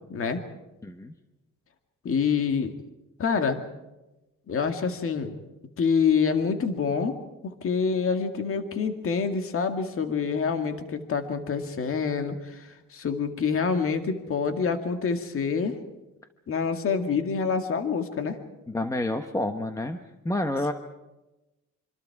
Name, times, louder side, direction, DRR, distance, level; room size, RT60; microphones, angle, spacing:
voice 1, 0.1-0.4 2.0-2.7 3.2-3.6 4.5-5.4 5.8-7.2 7.4-15.8 16.5-18.4, left 5 dB, 40° left, 7 dB, 2.1 m, -26 dB
voice 2, 0.8-1.1 18.7-20.0 20.2-20.7, left 1 dB, 10° left, 7 dB, 1.1 m, -28 dB
26.0 x 26.0 x 4.8 m, 1.0 s
cardioid pair, 155°, 33 cm